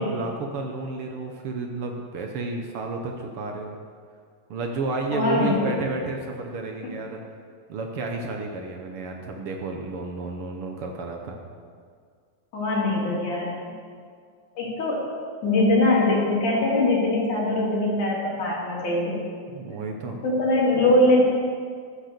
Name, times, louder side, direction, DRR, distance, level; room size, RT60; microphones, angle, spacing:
voice 1, 0.0-3.8 4.5-7.2 7.7-11.4 19.5-20.2, right 3 dB, 60° right, 2 dB, 1.7 m, -31 dB
voice 2, 5.1-5.7 12.5-13.5 14.6-15.0 15.4-19.2 20.2-21.2, left 2 dB, 90° left, -4 dB, 4.4 m, -22 dB
14.5 x 8.0 x 6.8 m, 2.1 s
omnidirectional pair, 3.3 m